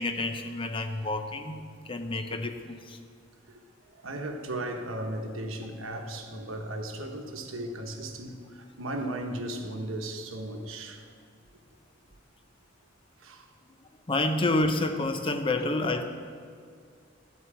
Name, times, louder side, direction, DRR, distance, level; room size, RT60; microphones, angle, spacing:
voice 1, 0.0-3.0 14.1-16.0, left 2 dB, 25° left, 7 dB, 0.5 m, -29 dB
voice 2, 4.0-11.0 13.2-13.4, right 1 dB, 75° right, 4 dB, 1.0 m, -36 dB
12.0 x 4.5 x 7.4 m, 2.2 s
head